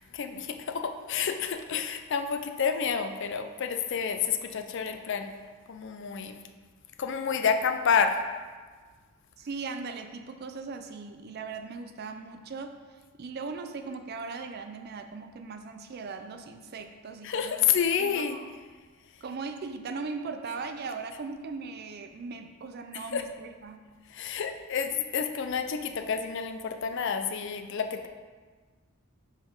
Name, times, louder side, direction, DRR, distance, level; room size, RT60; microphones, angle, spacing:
voice 1, 0.1-5.3 5.7-6.4 7.0-8.3 17.2-18.4 23.1-23.2 24.1-28.1, left 6 dB, 55° left, 7 dB, 0.4 m, -29 dB
voice 2, 9.4-17.7 18.0-18.5 19.2-23.8, right 4 dB, 45° right, 7 dB, 0.4 m, -39 dB
4.8 x 4.2 x 5.3 m, 1.5 s
head